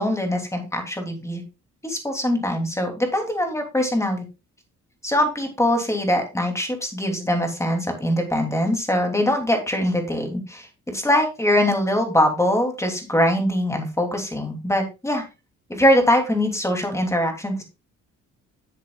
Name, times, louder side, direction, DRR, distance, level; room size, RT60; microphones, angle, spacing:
voice 1, 0.0-1.4 1.8-4.2 5.0-15.2 15.7-17.6, left 1 dB, 10° left, 3 dB, 2.9 m, -22 dB
11.5 x 7.3 x 2.4 m, 0.27 s
cardioid pair, 90°, 30 cm